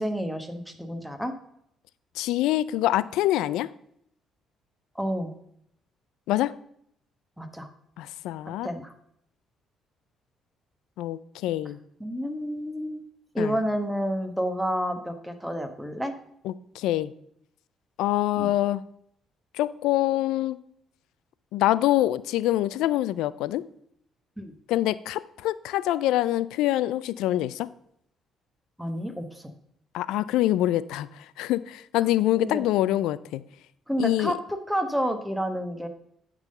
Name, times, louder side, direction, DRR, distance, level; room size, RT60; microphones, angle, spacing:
voice 1, 0.0-1.3 4.9-5.3 7.4-7.7 8.6-8.9 12.0-13.0 13.3-16.1 18.4-18.5 24.4-24.5 28.8-29.5 32.4-32.6 33.9-35.9, equal, ahead, 7 dB, 1.1 m, -29 dB
voice 2, 2.2-3.7 6.3-6.5 8.0-8.7 11.0-11.8 13.4-13.6 16.4-17.1 18.0-18.8 19.5-20.6 21.5-23.6 24.7-27.7 29.9-33.4 34.0-34.3, left 14 dB, 85° left, 17 dB, 0.3 m, -25 dB
9.1 x 3.8 x 6.6 m, 0.72 s
cardioid pair, 80°, 0 cm